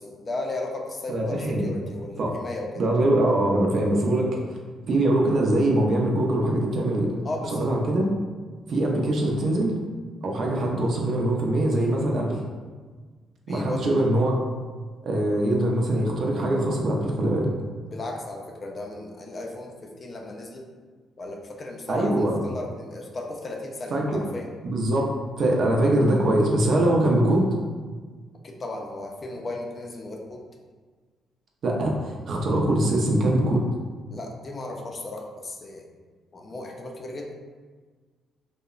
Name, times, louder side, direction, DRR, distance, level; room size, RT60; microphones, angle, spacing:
voice 1, 0.0-2.7 7.2-7.7 13.5-13.9 17.9-20.7 21.2-24.5 28.4-30.4 34.1-35.8 36.3-37.3, left 2 dB, 35° left, 1 dB, 0.4 m, -35 dB
voice 2, 1.1-1.7 2.2-2.3 2.8-4.6 4.9-7.2 7.5-8.1 8.7-9.7 10.2-12.4 13.5-14.4 15.0-17.5 21.9-22.4 23.9-24.2 24.6-25.1 25.4-27.5 31.6-33.7, right 1 dB, 60° right, -1 dB, 0.4 m, -23 dB
2.7 x 2.0 x 2.4 m, 1.5 s
cardioid pair, 90°, 0 cm